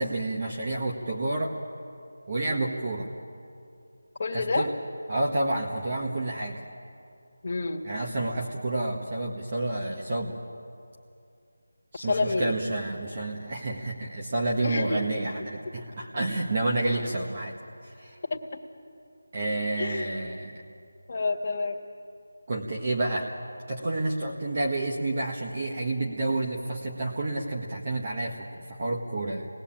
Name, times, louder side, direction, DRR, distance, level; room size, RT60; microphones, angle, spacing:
voice 1, 0.0-1.5 2.3-3.1 4.3-4.7 5.1-6.6 7.8-10.4 11.9-17.6 17.8-18.2 19.3-20.6 22.5-23.3 23.7-29.5, right 2 dB, 35° right, -1 dB, 1.7 m, -29 dB
voice 2, 4.2-4.7 7.4-7.8 12.0-12.5 14.6-15.0 18.3-18.4 19.8-20.2 21.1-21.8, left 3 dB, 35° left, 0 dB, 2.0 m, -28 dB
27.5 x 20.0 x 9.0 m, 2.5 s
figure-of-eight pair, 175°, 0 cm